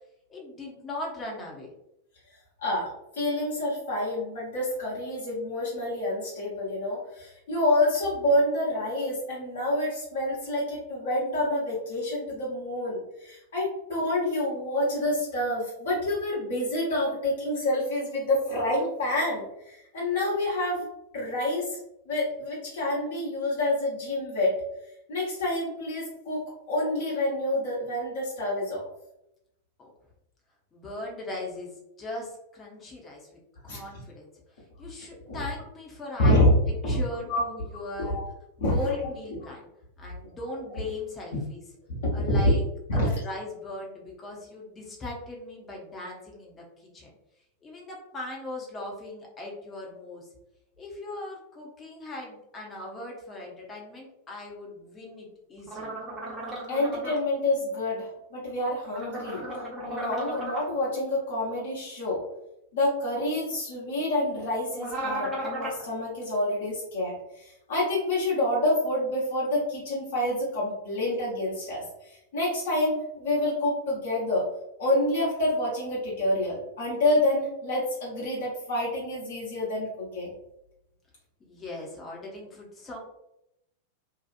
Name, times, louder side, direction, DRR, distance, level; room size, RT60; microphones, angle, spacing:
voice 1, 0.3-1.7 29.8-29.9 30.7-31.7 32.0-33.3 33.6-34.3 34.8-36.5 36.9-38.2 38.6-39.6 40.0-41.6 42.1-42.6 42.9-47.1 47.6-50.3 50.8-56.0 81.4-83.0, left 2 dB, 20° left, -2 dB, 0.9 m, -39 dB
voice 2, 2.6-20.8 21.1-21.8 22.1-24.6 25.1-26.4 26.7-28.9 33.6-33.8 35.3-35.4 36.2-36.5 36.9-37.0 37.3-37.4 38.0-38.2 38.6-38.8 40.7-40.8 41.9-42.5 42.9-43.0 56.7-59.4 59.8-62.2 62.7-74.4 74.8-80.3, left 1 dB, 65° left, -6 dB, 1.1 m, -27 dB
sound 1, 55.7-57.2 58.8-60.6 64.7-65.8, right 1 dB, 15° right, 0.9 m, -35 dB
2.8 x 2.4 x 2.5 m, 0.84 s
figure-of-eight pair, 90°, 0 cm